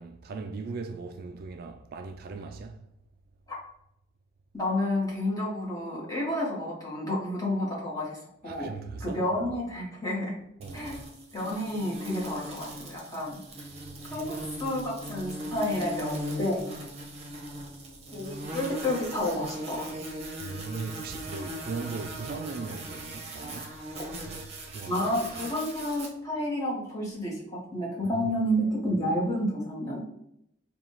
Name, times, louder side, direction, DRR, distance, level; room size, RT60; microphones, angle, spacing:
voice 1, 0.0-2.9 8.4-9.2 10.6-10.9 13.9-14.2 20.4-24.0 24.2-25.5 28.1-28.5, right 4 dB, 55° right, 0.3 m, -39 dB
voice 2, 4.5-8.2 8.4-8.7 9.0-10.3 10.7-11.0 11.3-13.4 14.1-16.7 18.1-19.9 24.9-30.0, left 1 dB, 20° left, 1.4 m, -30 dB
sound 1, 10.6-26.1, right 1 dB, 35° right, 0.8 m, -39 dB
3.7 x 2.4 x 4.5 m
head